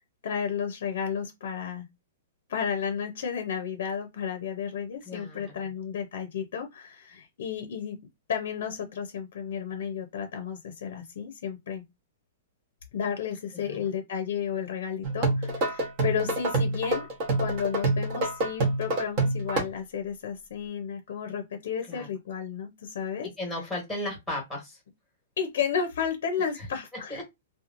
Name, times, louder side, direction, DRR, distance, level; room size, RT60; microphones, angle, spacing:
voice 1, 0.2-1.9 2.5-8.0 8.3-11.8 12.9-17.1 17.4-23.3 25.4-27.2, left 7 dB, 60° left, 0.6 m, -32 dB
voice 2, 5.1-5.7 13.5-13.9 21.9-22.1 23.4-24.8 27.1-27.2, left 1 dB, ahead, 1.2 m, -35 dB
sound 1, 15.0-19.6, right 2 dB, 30° right, 0.8 m, -27 dB
2.9 x 2.2 x 2.5 m
hypercardioid pair, 175°, 0 cm